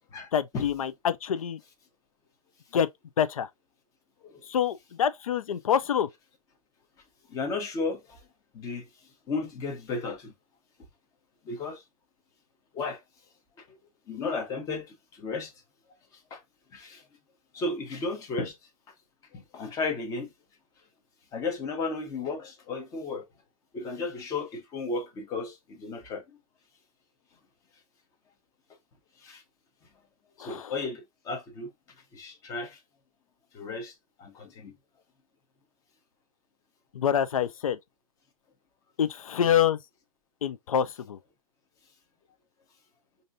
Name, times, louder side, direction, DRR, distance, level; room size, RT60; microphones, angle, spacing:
voice 1, 0.3-1.6 2.7-2.9 3.2-3.5 4.5-6.1 30.4-30.7 36.9-37.8 39.0-39.8 40.4-41.2, left 9 dB, 65° left, 0.5 m, -26 dB
voice 2, 7.3-8.2 8.5-8.9 9.3-10.3 11.4-11.8 12.7-13.0 13.6-13.8 14.1-15.5 16.3-16.4 16.7-17.1 17.5-18.6 19.3-20.3 21.3-23.3 23.7-26.2 29.2-29.4 30.4-31.7 32.1-32.8 33.5-34.7, left 3 dB, 15° left, 0.9 m, -34 dB
5.2 x 2.7 x 2.5 m
hypercardioid pair, 135°, 19 cm